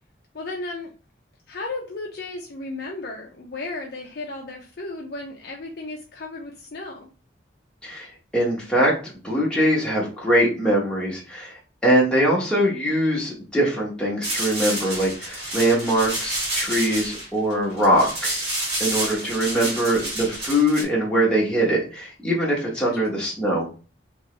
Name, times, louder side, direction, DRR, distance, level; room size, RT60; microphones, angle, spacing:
voice 1, 0.3-0.9 1.5-7.1 19.5-19.9 22.8-23.1, left 2 dB, 55° left, -1 dB, 0.5 m, -35 dB
voice 2, 7.8-9.0 9.2-11.5 11.8-18.4 18.8-23.7, equal, 5° left, -5 dB, 1.0 m, -22 dB
sound 1, 14.2-20.8, right 1 dB, 60° right, 1.6 m, -29 dB
3.0 x 2.9 x 3.2 m, 0.37 s
head